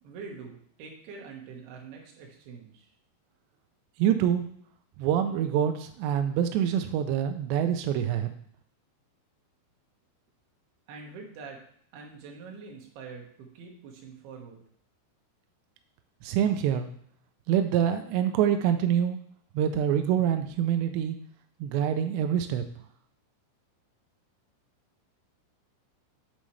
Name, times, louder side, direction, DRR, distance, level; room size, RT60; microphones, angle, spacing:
voice 1, 0.0-2.9 10.9-11.6 11.9-14.6, right 5 dB, 65° right, 0 dB, 3.0 m, -45 dB
voice 2, 4.0-4.5 5.0-8.3 16.2-16.9 17.5-19.2 19.6-21.2 21.6-22.6, right 9 dB, 90° right, 7 dB, 2.5 m, -25 dB
9.1 x 7.4 x 3.3 m, 0.62 s
omnidirectional pair, 5.8 m